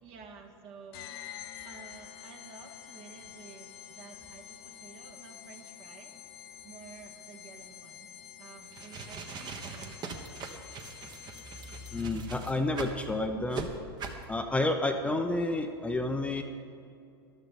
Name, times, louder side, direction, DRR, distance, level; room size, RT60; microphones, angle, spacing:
voice 1, 0.0-1.1 1.6-6.1 6.6-8.1 8.4-10.1, right 5 dB, 50° right, 2 dB, 1.8 m, -51 dB
sound 1, 0.9-12.3, left 10 dB, 65° left, 0.8 m, -48 dB
sound 2, 8.6-13.0 13.5-13.7 14.0-14.2, right 5 dB, 35° right, 1.3 m, -41 dB
voice 2, 11.9-13.7 14.3-16.4, left 2 dB, 10° left, 5 dB, 0.7 m, -30 dB
14.0 x 12.0 x 3.9 m, 2.6 s
hypercardioid pair, 105°, 13 cm